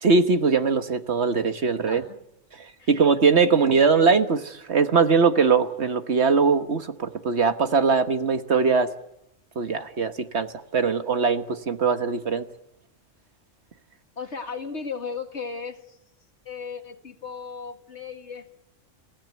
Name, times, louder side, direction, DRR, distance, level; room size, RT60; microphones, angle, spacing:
voice 1, 0.0-2.0 2.6-8.9 9.5-12.4, right 5 dB, 55° right, 9 dB, 1.5 m, -21 dB
voice 2, 1.9-2.2 2.8-2.9 14.2-16.0 16.5-18.5, left 5 dB, 60° left, 6 dB, 2.3 m, -35 dB
29.0 x 17.0 x 9.4 m, 0.84 s
omnidirectional pair, 1.4 m